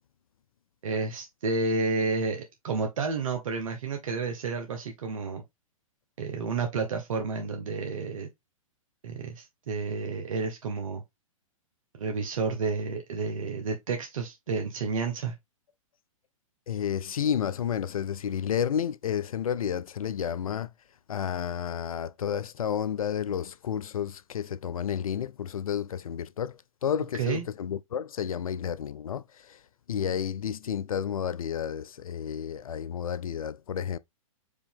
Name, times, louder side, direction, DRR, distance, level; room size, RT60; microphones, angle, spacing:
voice 1, 0.8-5.4 6.2-8.3 9.0-11.0 12.0-15.3 27.2-27.4, right 4 dB, 70° right, 1.0 m, -30 dB
voice 2, 16.7-20.7 21.1-29.6 29.9-34.0, left 8 dB, 80° left, 0.4 m, -31 dB
5.1 x 2.7 x 3.5 m
figure-of-eight pair, 115°, 18 cm